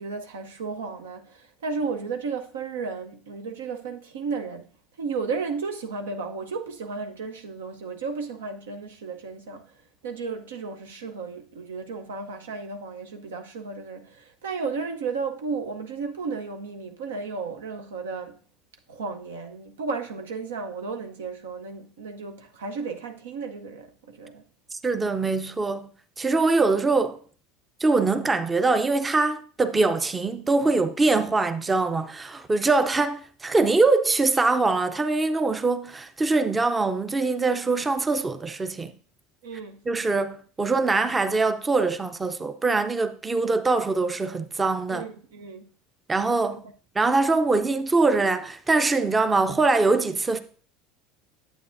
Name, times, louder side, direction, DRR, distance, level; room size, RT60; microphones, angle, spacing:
voice 1, 0.0-4.7 5.0-9.7 10.0-18.4 18.9-24.4 39.4-39.8 44.9-45.7, right 4 dB, 80° right, 0.7 m, -33 dB
voice 2, 24.8-25.9 26.2-27.2 27.8-39.0 39.9-45.1 46.1-46.6 47.0-50.4, right 3 dB, 20° right, 0.5 m, -23 dB
9.3 x 7.9 x 2.6 m
hypercardioid pair, 80°, 0 cm